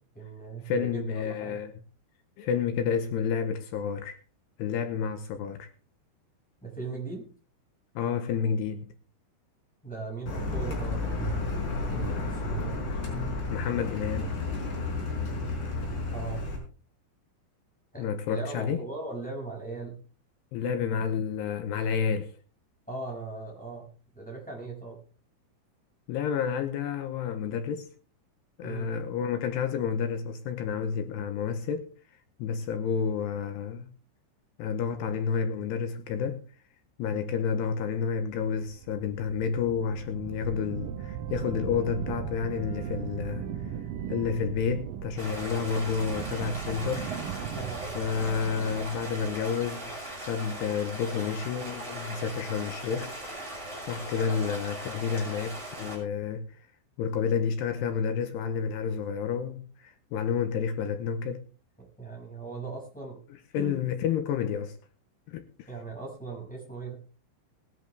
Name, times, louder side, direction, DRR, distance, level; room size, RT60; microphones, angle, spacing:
voice 1, 0.1-1.6 6.6-7.2 9.8-12.8 16.1-16.5 17.9-20.0 22.9-23.9 24.2-25.0 28.6-28.9 47.5-47.9 61.8-63.2 63.5-63.8 65.7-66.9, right 4 dB, ahead, 5.6 m, -39 dB
voice 2, 0.6-1.7 2.4-4.2 4.6-5.7 8.0-8.9 13.1-14.3 18.0-18.8 20.5-22.3 26.1-27.9 28.6-31.9 32.4-33.9 34.6-36.4 37.0-43.8 44.1-47.1 47.9-49.9 50.2-53.1 53.9-56.6 57.0-61.4 63.5-64.8 65.3-65.7, left 7 dB, 80° left, 2.7 m, -30 dB
Car, 10.3-16.6, left 3 dB, 45° left, 6.4 m, -32 dB
sound 1, 38.3-50.3, right 8 dB, 75° right, 2.0 m, -38 dB
Stream, 45.2-56.0, right 1 dB, 20° right, 6.7 m, -39 dB
20.0 x 11.0 x 3.4 m
omnidirectional pair, 5.5 m